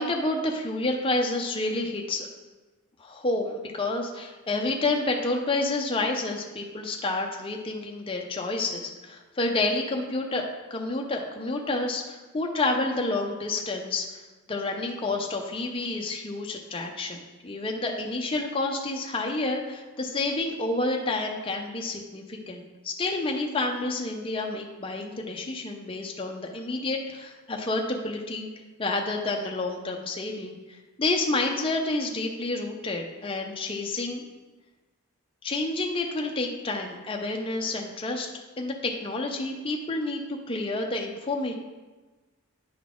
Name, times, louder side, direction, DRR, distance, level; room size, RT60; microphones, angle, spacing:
voice 1, 0.0-2.3 3.0-10.4 10.7-14.1 14.5-28.5 28.8-34.3 35.4-38.3 38.6-40.2 40.5-41.5, left 2 dB, 25° left, 1 dB, 0.5 m, -29 dB
9.3 x 4.0 x 3.6 m, 1.2 s
head